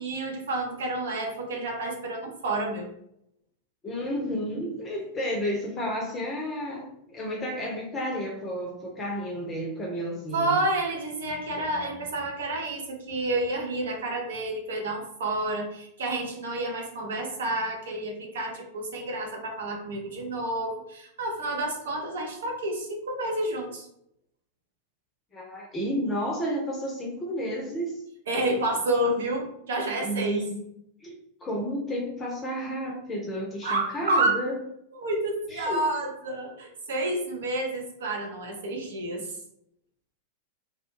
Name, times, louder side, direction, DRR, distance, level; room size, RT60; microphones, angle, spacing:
voice 1, 0.0-2.9 10.3-23.9 28.3-30.4 33.6-34.3 34.9-39.2, right 1 dB, 60° right, 1 dB, 0.6 m, -29 dB
voice 2, 3.8-10.6 25.3-28.0 30.0-30.6 31.0-31.2 31.4-34.6 35.5-35.9, equal, 20° left, -2 dB, 0.5 m, -31 dB
2.3 x 2.1 x 3.0 m, 0.74 s
figure-of-eight pair, 90°, 0 cm